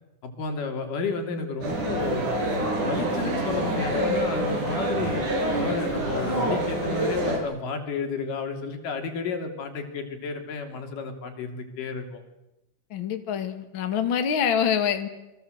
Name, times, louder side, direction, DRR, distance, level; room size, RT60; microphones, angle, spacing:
voice 1, 0.2-2.3 2.8-5.2 5.5-12.2, left 4 dB, 85° left, 5 dB, 4.7 m, -32 dB
sound 1, 1.6-7.4, right 1 dB, 70° right, 7.0 m, -26 dB
voice 2, 12.9-15.1, left 8 dB, 45° left, 7 dB, 2.5 m, -25 dB
29.5 x 23.5 x 8.0 m, 0.99 s
omnidirectional pair, 3.7 m